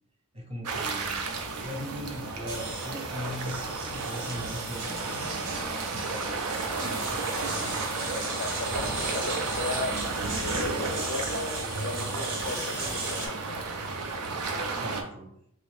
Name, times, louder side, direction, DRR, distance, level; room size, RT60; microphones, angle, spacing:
voice 1, 0.3-1.2 1.6-3.6 3.9-7.7 14.4-15.3, equal, 25° right, 0 dB, 0.7 m, -40 dB
sound 1, 0.6-15.0, right 3 dB, 85° right, 0.5 m, -33 dB
sound 2, 2.5-13.3, right 2 dB, 55° right, 0.8 m, -36 dB
voice 2, 8.1-13.6, left 3 dB, 50° left, 7 dB, 0.4 m, -37 dB
2.9 x 2.6 x 3.2 m, 0.72 s
head